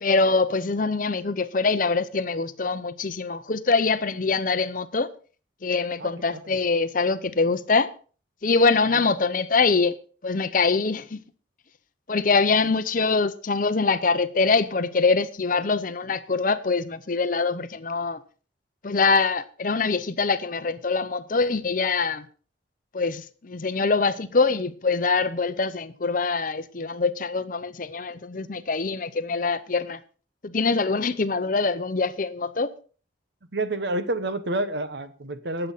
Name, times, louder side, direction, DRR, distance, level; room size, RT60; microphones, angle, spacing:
voice 1, 0.0-5.1 5.6-7.9 8.4-9.9 10.2-11.2 12.1-18.2 18.8-22.2 22.9-30.0 30.4-32.7, left 4 dB, 45° left, 0.7 m, -24 dB
voice 2, 33.5-35.7, right 2 dB, 65° right, 1.0 m, -28 dB
19.5 x 7.9 x 4.1 m
head